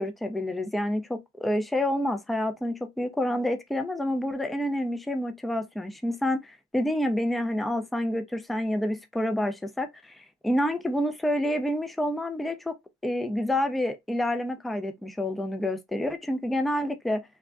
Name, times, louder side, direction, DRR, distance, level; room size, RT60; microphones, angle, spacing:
voice 1, 0.0-12.8 13.0-17.2, left 1 dB, ahead, 0.3 m, -28 dB
3.4 x 2.1 x 2.4 m
cardioid pair, 90°, 30 cm